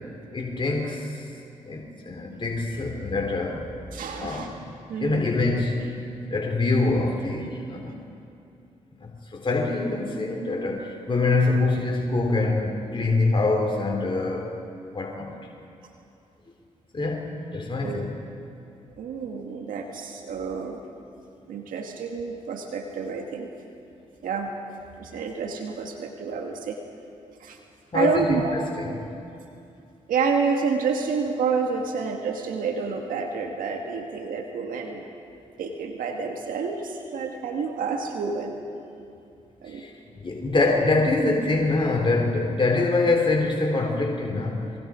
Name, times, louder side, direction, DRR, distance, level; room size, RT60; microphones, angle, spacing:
voice 1, 0.3-1.2 1.6-3.7 4.2-4.7 5.0-5.9 6.3-7.9 9.0-14.6 14.9-15.3 16.9-18.1 27.9-29.1 39.6-44.8, left 3 dB, 35° left, 0 dB, 3.6 m, -25 dB
voice 2, 3.9-4.5 4.9-5.2 17.8-18.1 19.0-20.8 21.5-23.5 24.2-24.5 25.0-26.8 27.4-27.6 27.9-28.6 30.1-35.1 35.6-38.6 39.6-39.9, right 5 dB, 80° right, 3 dB, 1.8 m, -29 dB
29.0 x 23.0 x 5.1 m, 2.6 s
supercardioid pair, 50°, 14 cm